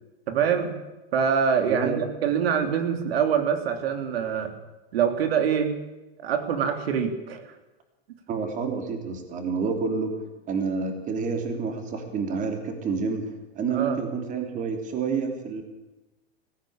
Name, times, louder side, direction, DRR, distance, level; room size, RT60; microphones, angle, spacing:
voice 1, 0.3-0.7 1.1-4.5 4.9-5.7 6.2-7.5 13.7-14.0, right 7 dB, 85° right, 8 dB, 3.3 m, -24 dB
voice 2, 1.7-2.0 8.3-10.1 10.5-15.6, right 5 dB, 25° right, 5 dB, 3.3 m, -29 dB
21.0 x 15.5 x 8.8 m, 1.1 s
supercardioid pair, 155°, 30 cm